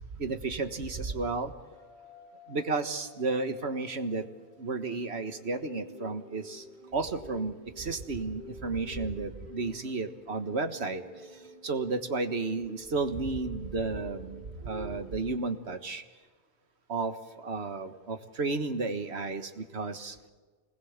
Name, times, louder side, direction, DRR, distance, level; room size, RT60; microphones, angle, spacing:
voice 1, 0.2-1.5 2.5-4.2 4.6-6.6 6.9-11.0 11.6-16.0 16.9-17.1 17.4-20.1, right 3 dB, 70° right, 9 dB, 1.8 m, -32 dB
sound 1, 0.8-15.2, equal, 30° right, 5.9 m, -51 dB
26.0 x 20.5 x 7.4 m, 1.4 s
omnidirectional pair, 1.2 m